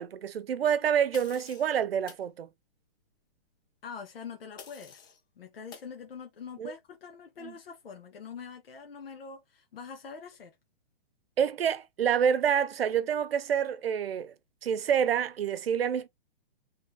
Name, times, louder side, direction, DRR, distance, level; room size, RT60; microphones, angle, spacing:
voice 1, 0.0-2.5 6.6-6.7 7.4-7.5 11.4-14.3 14.6-16.1, right 8 dB, 85° right, 0.7 m, -27 dB
sound 1, 1.1-1.7 2.1-2.3 4.6-5.2 5.7-5.9, left 6 dB, 20° left, 0.7 m, -48 dB
voice 2, 3.8-5.1 5.4-10.5, left 6 dB, 75° left, 1.2 m, -44 dB
4.6 x 3.4 x 3.3 m
hypercardioid pair, 170°, 29 cm